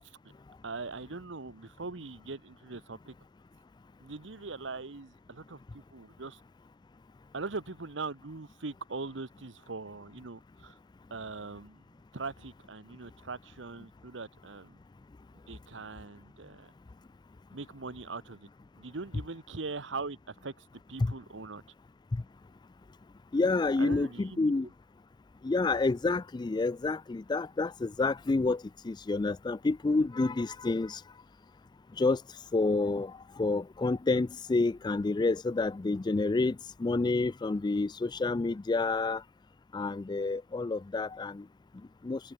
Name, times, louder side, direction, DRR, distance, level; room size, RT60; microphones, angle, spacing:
voice 1, 0.6-3.1 4.0-6.4 7.3-10.8 11.1-11.8 12.1-14.8 15.5-16.7 17.5-18.5 18.8-21.6 23.8-24.4, right 3 dB, 80° right, 1.2 m, -41 dB
voice 2, 23.3-24.7 25.4-31.0 32.0-32.2 32.5-33.1 33.4-39.2 39.7-41.4 42.0-42.2, left 3 dB, 25° left, 0.3 m, -29 dB
head